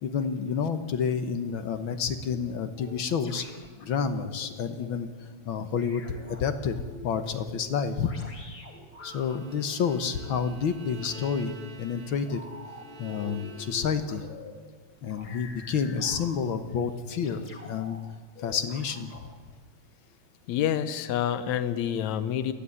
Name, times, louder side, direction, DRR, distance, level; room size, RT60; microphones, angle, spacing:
voice 1, 0.0-3.5 3.8-5.1 5.4-6.0 6.3-8.1 9.0-12.4 13.0-14.3 15.0-18.0 18.4-19.1, left 6 dB, 60° left, 10 dB, 1.4 m, -29 dB
sound 1, 2.0-5.0 5.8-9.8 11.0-11.2 12.3-14.5 15.0-16.7 17.2-18.0 18.4-19.3, left 2 dB, 45° left, 3.5 m, -47 dB
Bowed string instrument, 9.0-14.2, right 4 dB, 35° right, 2.0 m, -49 dB
voice 2, 20.5-22.5, left 9 dB, 75° left, 13 dB, 2.3 m, -27 dB
27.5 x 10.0 x 9.8 m, 1.4 s
omnidirectional pair, 3.4 m